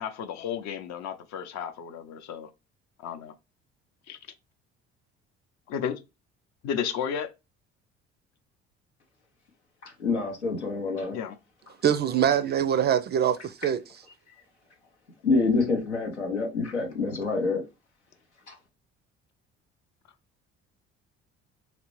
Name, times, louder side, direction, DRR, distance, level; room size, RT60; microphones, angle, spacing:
voice 1, 0.0-2.5 3.0-3.3 4.1-4.2 5.7-6.0 6.6-7.3 11.1-11.4, left 8 dB, 50° left, 0.7 m, -33 dB
voice 2, 9.8-11.2 15.2-17.6 18.5-18.6, left 3 dB, 90° left, 0.8 m, -27 dB
voice 3, 11.8-13.8, right 9 dB, 30° right, 0.4 m, -24 dB
4.1 x 3.3 x 3.1 m
figure-of-eight pair, 50°, 33 cm